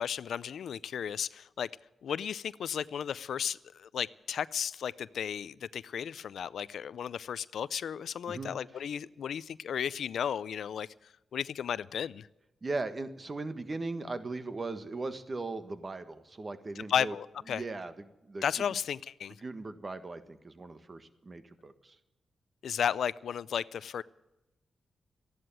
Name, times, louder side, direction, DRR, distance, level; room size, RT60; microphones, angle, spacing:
voice 1, 0.0-1.7 2.0-10.9 11.3-12.3 16.8-17.6 18.4-19.4 22.6-24.0, left 8 dB, 80° left, 18 dB, 0.4 m, -34 dB
voice 2, 12.6-17.1 17.5-18.4 18.7-18.8 19.4-22.0, right 3 dB, 35° right, 10 dB, 1.5 m, -38 dB
14.0 x 11.0 x 9.0 m, 0.96 s
cardioid pair, 70°, 0 cm